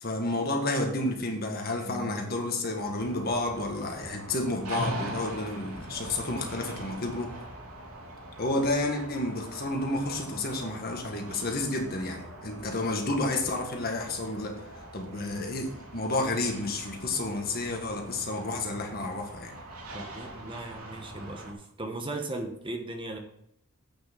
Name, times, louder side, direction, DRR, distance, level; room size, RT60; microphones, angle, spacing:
voice 1, 0.0-7.3 8.4-14.6 14.9-15.7 15.9-19.5, left 2 dB, 45° left, 3 dB, 1.7 m, -30 dB
voice 2, 1.8-2.3 4.5-4.8 15.1-15.5 19.9-23.2, right 2 dB, 20° right, 4 dB, 1.0 m, -38 dB
sound 1, 2.8-21.5, right 1 dB, 90° right, 3.0 m, -42 dB
8.8 x 6.2 x 6.0 m, 0.73 s
head